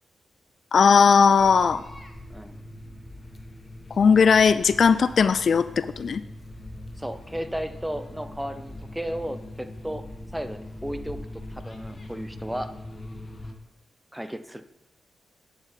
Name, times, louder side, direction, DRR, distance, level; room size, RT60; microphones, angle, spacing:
voice 1, 0.7-1.8 4.0-6.2, left 6 dB, 65° left, 15 dB, 0.3 m, -18 dB
sound 1, 1.4-13.5, left 1 dB, 35° left, 1.3 m, -41 dB
voice 2, 7.0-10.0 10.3-11.2 11.5-12.7 14.1-14.6, equal, 5° right, 11 dB, 0.7 m, -34 dB
9.4 x 8.1 x 3.5 m, 0.91 s
supercardioid pair, 50°, 0 cm